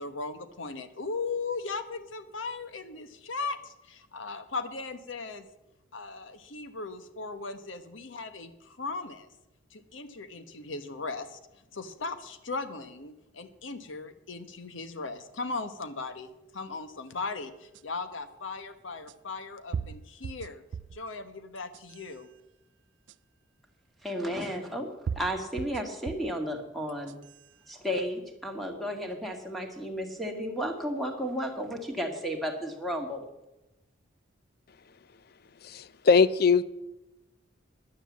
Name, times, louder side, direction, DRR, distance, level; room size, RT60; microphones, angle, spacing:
voice 1, 0.0-5.5 5.9-9.3 9.7-11.4 11.7-20.6 20.9-22.3, left 3 dB, 80° left, 10 dB, 1.1 m, -38 dB
sound 1, 17.7-17.8 19.1-19.2 19.7-21.0 21.6-22.1 23.1-23.2 24.4-24.5 25.1-26.4 26.9-27.4, right 6 dB, 65° right, 0.3 m, -37 dB
voice 2, 24.0-24.9 25.2-27.1 27.7-33.2, equal, ahead, 2 dB, 1.8 m, -33 dB
voice 3, 35.6-36.6, left 5 dB, 50° left, 17 dB, 0.5 m, -21 dB
11.0 x 9.4 x 7.3 m, 0.94 s
head